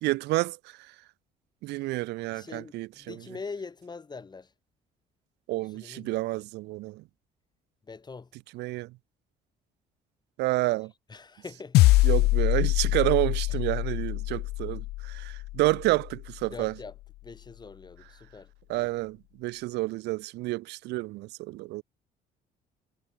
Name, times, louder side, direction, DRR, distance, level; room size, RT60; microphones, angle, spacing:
voice 1, 0.0-0.6 1.6-3.2 5.5-7.0 8.5-8.9 10.4-10.9 12.0-16.7 18.7-21.8, right 20 dB, 85° right, 1.4 m, -29 dB
voice 2, 2.3-4.5 5.6-6.5 7.8-8.3 11.1-11.9 13.5-13.6 16.5-17.0 17.2-18.9, left 4 dB, 25° left, 7.6 m, -43 dB
sound 1, 11.7-16.3, left 19 dB, 75° left, 0.4 m, -24 dB
cardioid pair, 110°, 17 cm